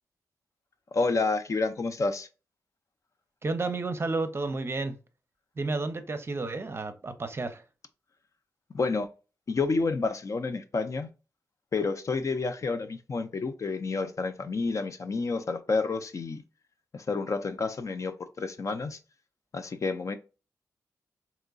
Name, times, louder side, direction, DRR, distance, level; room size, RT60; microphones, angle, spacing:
voice 1, 0.9-2.3 8.7-9.1 9.5-11.1 11.7-16.4 16.9-19.0 19.5-20.2, left 3 dB, 50° left, 0.5 m, -29 dB
voice 2, 3.4-5.0 5.6-7.6, right 3 dB, 40° right, 0.6 m, -31 dB
3.6 x 3.0 x 2.3 m
cardioid pair, 75°, 7 cm